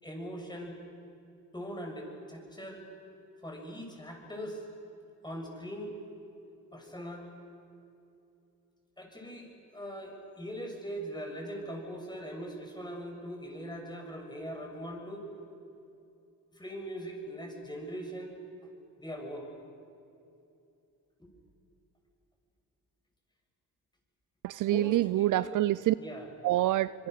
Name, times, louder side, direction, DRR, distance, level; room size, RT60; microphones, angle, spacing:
voice 1, 0.0-0.8 1.5-2.8 3.4-4.6 5.2-6.0 6.7-7.3 9.0-15.3 16.5-18.3 19.0-19.5 21.2-21.3 24.6-25.6 26.0-26.3, equal, 10° left, 1 dB, 6.9 m, -41 dB
voice 2, 24.4-25.9 26.4-27.1, right 15 dB, 55° right, 18 dB, 0.5 m, -26 dB
26.0 x 23.0 x 6.7 m, 2.7 s
supercardioid pair, 65°, 38 cm